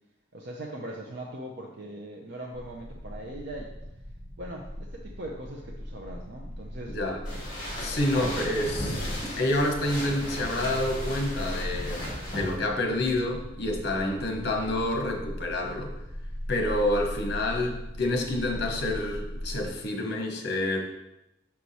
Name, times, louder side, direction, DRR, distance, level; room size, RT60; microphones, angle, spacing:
voice 1, 0.3-3.7 4.4-7.0 8.1-8.6, right 1 dB, 55° right, -1 dB, 0.6 m, -40 dB
sound 1, 2.5-19.7, equal, 25° right, 0.9 m, -39 dB
voice 2, 6.9-7.2 7.8-9.1 9.4-15.9 16.5-20.8, left 1 dB, 50° left, 2 dB, 1.0 m, -28 dB
sound 2, 7.2-12.6, equal, 20° left, 2.3 m, -35 dB
5.9 x 4.6 x 4.1 m, 0.89 s
head